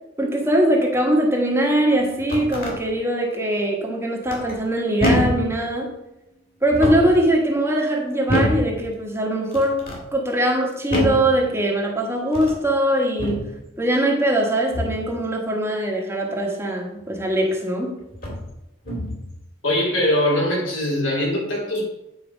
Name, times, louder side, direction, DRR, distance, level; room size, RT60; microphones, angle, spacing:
voice 1, 0.2-5.9 6.6-9.8 10.1-13.4 13.8-17.9, right 1 dB, 15° right, 0 dB, 1.3 m, -21 dB
sound 1, 2.0-2.8 4.3-4.7 5.0-5.5 6.6-7.2 8.3-8.7 9.5-10.0 10.9-11.3 12.2-12.6 13.2-13.5 14.7-15.1 17.2-17.3 18.1-18.5 18.8-19.3, left 1 dB, 50° left, 2.5 m, -24 dB
voice 2, 19.6-21.8, left 1 dB, 75° left, -3 dB, 2.9 m, -21 dB
9.1 x 4.6 x 5.0 m, 0.90 s
head